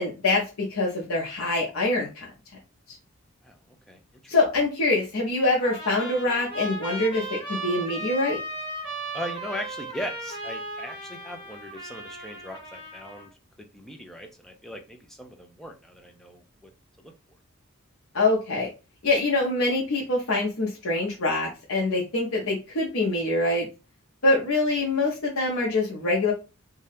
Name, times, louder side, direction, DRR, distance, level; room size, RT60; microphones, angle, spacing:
voice 1, 0.0-2.3 4.3-8.4 18.1-18.7 19.0-23.7 24.2-26.3, left 2 dB, 70° left, -3 dB, 0.7 m, -24 dB
Trumpet, 5.6-13.3, right 2 dB, 20° left, 1.2 m, -36 dB
voice 2, 9.1-13.3 13.6-16.7 17.0-17.1, equal, ahead, 3 dB, 0.4 m, -39 dB
2.7 x 2.3 x 3.3 m, 0.30 s
head